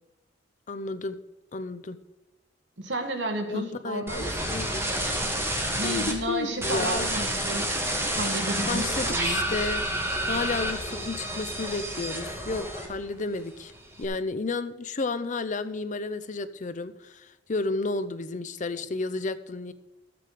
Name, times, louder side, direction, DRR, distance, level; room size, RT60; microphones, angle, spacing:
voice 1, 0.7-1.2 1.5-2.0 3.5-5.1 5.8-7.1 8.7-9.8 10.3-13.7 14.0-19.7, left 3 dB, 40° left, 12 dB, 0.6 m, -32 dB
voice 2, 2.8-4.3 5.8-7.7 8.1-9.4, right 1 dB, 65° right, 4 dB, 1.7 m, -32 dB
sound 1, 4.1-6.1 6.6-13.2 13.5-14.0, right 1 dB, 15° right, 1.6 m, -29 dB
13.5 x 7.7 x 4.9 m, 0.94 s
head